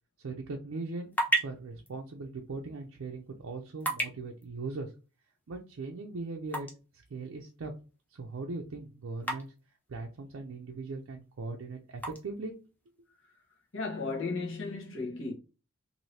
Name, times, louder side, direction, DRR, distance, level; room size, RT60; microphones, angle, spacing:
voice 1, 0.2-4.9 5.5-6.7 7.1-7.7 8.1-9.5 9.9-12.5, right 3 dB, 65° right, 0.4 m, -39 dB
sound 1, 0.7-14.5, right 1 dB, 5° left, 0.4 m, -40 dB
voice 2, 13.7-15.3, left 3 dB, 60° left, 0.9 m, -34 dB
2.7 x 2.6 x 3.1 m
head